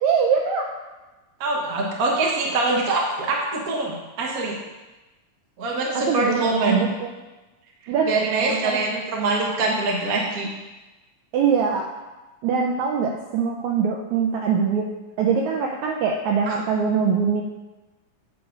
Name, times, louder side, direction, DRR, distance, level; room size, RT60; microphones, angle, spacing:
voice 1, 0.0-0.7 6.1-7.1 7.9-8.1 8.5-8.8 11.3-11.9 12.4-14.9 15.2-17.4, right 6 dB, 90° right, 1 dB, 1.6 m, -23 dB
voice 2, 1.4-4.6 5.6-6.8 7.8-10.5 16.5-16.6, right 3 dB, 70° right, -2 dB, 0.8 m, -24 dB
8.5 x 4.8 x 5.2 m, 1.1 s
omnidirectional pair, 3.9 m